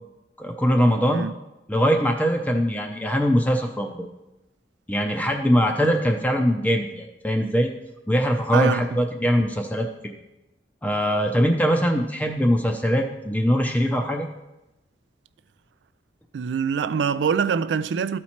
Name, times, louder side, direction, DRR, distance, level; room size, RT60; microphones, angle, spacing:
voice 1, 0.4-1.3 1.7-4.1 4.9-7.7 8.1-9.9 10.8-14.3, equal, 10° left, 0.5 m, -22 dB
voice 2, 8.5-8.8 16.3-18.2, right 6 dB, 80° right, 0.3 m, -24 dB
13.0 x 4.4 x 4.3 m
head